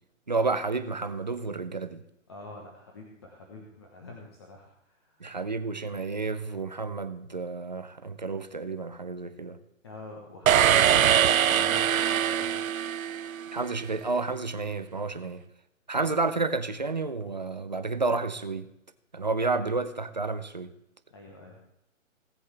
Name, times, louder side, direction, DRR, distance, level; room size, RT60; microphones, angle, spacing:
voice 1, 0.3-2.0 5.2-9.6 13.5-15.4 15.9-18.7 19.1-20.7, right 3 dB, 35° right, 0.5 m, -30 dB
voice 2, 2.3-5.3 9.8-12.7 21.1-21.6, left 2 dB, 20° left, 0.9 m, -45 dB
sound 1, 10.5-13.6, right 10 dB, 85° right, 0.6 m, -23 dB
18.5 x 7.9 x 3.3 m
hypercardioid pair, 165°, 40 cm